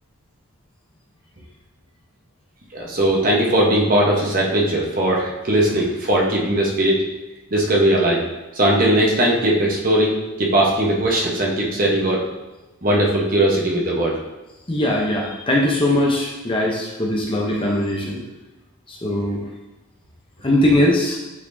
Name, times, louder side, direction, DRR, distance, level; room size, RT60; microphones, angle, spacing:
voice 1, 2.7-7.0 7.5-8.2 8.6-12.2 12.8-14.1, right 1 dB, 40° right, -2 dB, 1.1 m, -19 dB
voice 2, 14.7-18.2 18.9-19.5 20.4-21.2, left 1 dB, 25° left, -2 dB, 0.8 m, -20 dB
8.5 x 4.1 x 2.7 m, 1.1 s
head